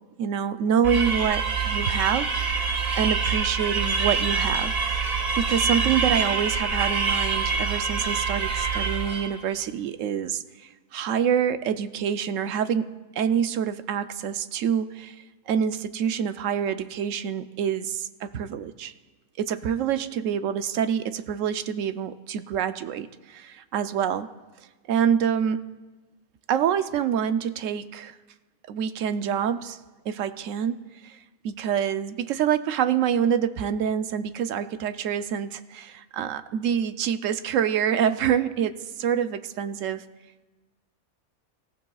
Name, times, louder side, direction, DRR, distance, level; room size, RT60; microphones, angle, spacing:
voice 1, 0.2-5.0 5.4-10.4 10.9-12.9 13.2-15.1 15.5-18.9 19.4-24.3 24.9-25.6 26.5-28.1 28.7-29.8 30.1-30.8 31.0-31.1 31.4-40.0, right 8 dB, 70° right, 11 dB, 0.9 m, -26 dB
sound 1, 0.8-9.4, right 5 dB, 45° right, 1.2 m, -26 dB
24.5 x 14.0 x 2.3 m, 1.2 s
omnidirectional pair, 1.6 m